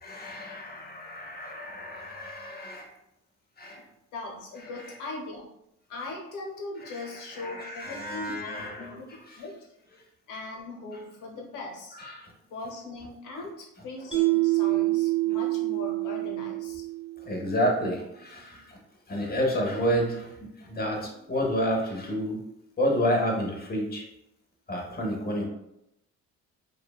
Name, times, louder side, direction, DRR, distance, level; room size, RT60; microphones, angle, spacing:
voice 1, 0.0-2.9 3.6-3.8 6.8-9.0 12.0-12.3 17.3-18.6 19.1-22.4 22.8-24.0 24.7-25.4, equal, 30° left, 0 dB, 0.7 m, -30 dB
voice 2, 4.1-5.5 5.9-9.1 9.4-9.5 10.3-12.0 12.5-16.8, left 2 dB, 85° left, 0 dB, 0.8 m, -39 dB
Mallet percussion, 14.1-17.4, right 20 dB, ahead, 1.0 m, -26 dB
2.6 x 2.2 x 2.3 m, 0.81 s
cardioid pair, 90°, 30 cm